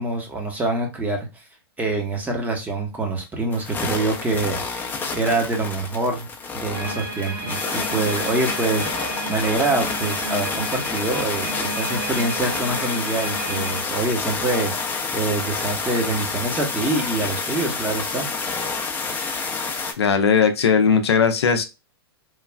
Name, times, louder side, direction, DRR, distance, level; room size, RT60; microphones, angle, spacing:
voice 1, 0.0-1.4 1.8-18.2, right 2 dB, 10° right, 0.8 m, -25 dB
sound 1, 3.5-19.9, left 4 dB, 15° left, 0.5 m, -28 dB
sound 2, 6.7-13.8, right 2 dB, 65° right, 1.4 m, -32 dB
voice 2, 20.0-21.6, left 6 dB, 80° left, 0.5 m, -18 dB
3.1 x 2.3 x 2.3 m
hypercardioid pair, 110°, 14 cm